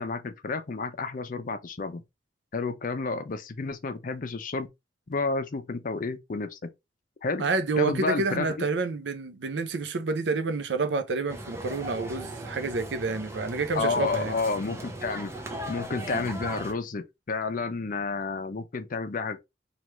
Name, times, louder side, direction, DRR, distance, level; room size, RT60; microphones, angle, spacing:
voice 1, 0.0-2.0 2.5-4.7 5.1-6.7 7.2-7.4 7.8-8.7 13.7-15.4 15.7-19.4, left 4 dB, 50° left, 0.5 m, -30 dB
voice 2, 7.4-14.4, right 3 dB, 75° right, 0.5 m, -29 dB
sound 1, 11.3-16.7, right 1 dB, 15° right, 0.6 m, -38 dB
3.2 x 2.4 x 3.0 m
head